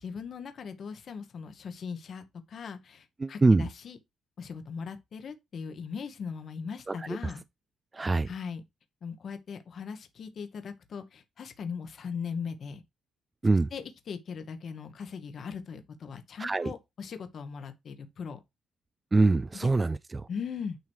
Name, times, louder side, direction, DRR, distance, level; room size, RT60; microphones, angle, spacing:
voice 1, 0.0-4.0 4.4-7.4 8.3-8.6 9.0-12.8 13.7-18.4 20.3-20.8, left 6 dB, 55° left, 1.2 m, -39 dB
voice 2, 3.2-3.7 6.9-7.3 7.9-8.3 13.4-13.7 16.4-16.7 19.1-20.3, right 3 dB, 25° right, 0.3 m, -24 dB
9.4 x 3.1 x 4.5 m
cardioid pair, 90°, 0 cm